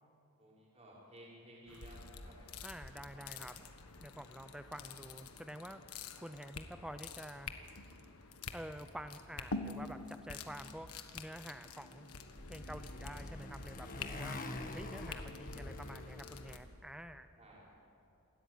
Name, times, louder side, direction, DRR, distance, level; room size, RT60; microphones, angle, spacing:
voice 1, 0.4-2.5 2.9-3.6 4.1-4.3 17.4-17.8, right 1 dB, 30° right, -6 dB, 5.7 m, -57 dB
sound 1, 1.7-16.6, left 4 dB, 85° left, 1.5 m, -48 dB
voice 2, 2.6-3.5 4.0-7.5 8.5-10.9 11.1-12.1 12.5-14.4 14.7-17.3, equal, 5° right, 10 dB, 0.5 m, -48 dB
Motorcycle, 11.8-16.8, left 2 dB, 40° left, 1.5 m, -46 dB
27.5 x 13.5 x 9.5 m, 2.8 s
head